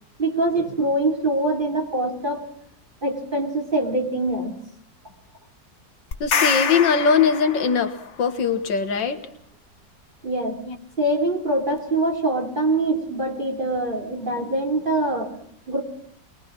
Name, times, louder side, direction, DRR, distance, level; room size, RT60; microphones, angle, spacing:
voice 1, 0.2-2.4 3.0-4.6 10.2-10.6 11.0-15.3 15.7-15.8, right 2 dB, 25° right, 1 dB, 3.6 m, -24 dB
sound 1, 6.1-8.1, left 6 dB, 45° left, 1.3 m, -25 dB
voice 2, 6.2-9.2 10.7-10.8, left 6 dB, 85° left, 8 dB, 2.2 m, -20 dB
23.0 x 21.0 x 6.0 m, 0.67 s
omnidirectional pair, 1.9 m